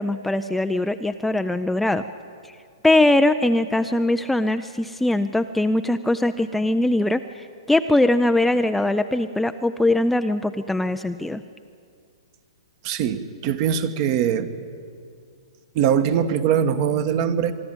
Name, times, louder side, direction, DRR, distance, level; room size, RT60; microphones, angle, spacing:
voice 1, 0.0-2.0 2.4-2.5 2.8-11.4, left 1 dB, 5° left, 8 dB, 0.4 m, -21 dB
voice 2, 12.8-14.5 15.7-17.5, right 8 dB, 40° right, 10 dB, 1.2 m, -22 dB
25.0 x 12.0 x 8.9 m, 2.3 s
hypercardioid pair, 130°, 3 cm